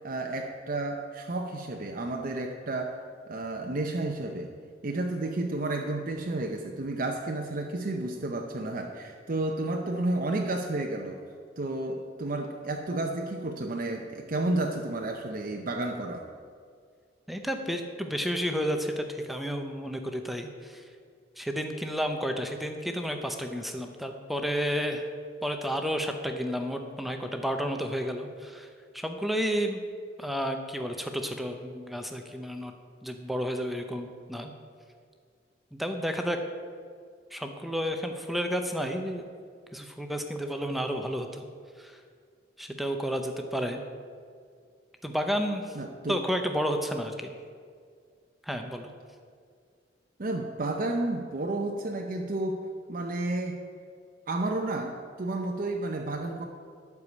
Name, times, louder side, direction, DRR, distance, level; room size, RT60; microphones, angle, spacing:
voice 1, 0.0-3.0 3.3-4.5 4.8-11.2 11.6-16.3 45.7-46.2 50.2-52.6 52.9-53.6 54.3-56.5, right 2 dB, 45° right, 2 dB, 0.7 m, -31 dB
voice 2, 17.3-20.9 21.4-25.1 25.4-29.8 30.2-32.7 33.0-34.5 35.7-36.4 37.3-39.3 39.7-41.5 41.8-42.0 42.6-43.8 45.0-45.8 46.1-47.3 48.4-48.9, equal, ahead, 5 dB, 0.6 m, -31 dB
12.0 x 4.8 x 8.5 m, 2.1 s
head